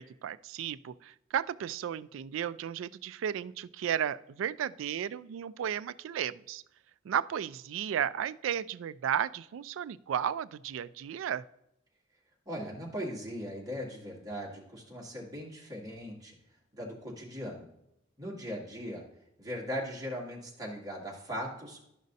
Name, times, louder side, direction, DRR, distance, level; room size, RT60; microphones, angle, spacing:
voice 1, 0.0-6.6 7.0-11.4, right 9 dB, 90° right, 16 dB, 0.3 m, -34 dB
voice 2, 12.5-16.4 16.7-17.7 18.2-19.0 19.4-21.8, equal, 20° right, -4 dB, 2.1 m, -39 dB
12.0 x 5.1 x 2.7 m, 0.81 s
head